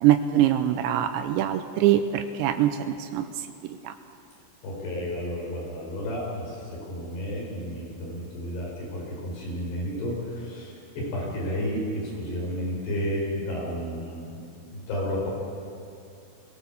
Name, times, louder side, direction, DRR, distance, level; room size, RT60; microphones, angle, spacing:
voice 1, 0.0-3.9, right 11 dB, 80° right, 8 dB, 2.7 m, -24 dB
voice 2, 4.6-14.4 14.7-15.3, equal, 55° left, -3 dB, 7.0 m, -32 dB
23.0 x 17.5 x 7.0 m, 2.6 s
omnidirectional pair, 5.8 m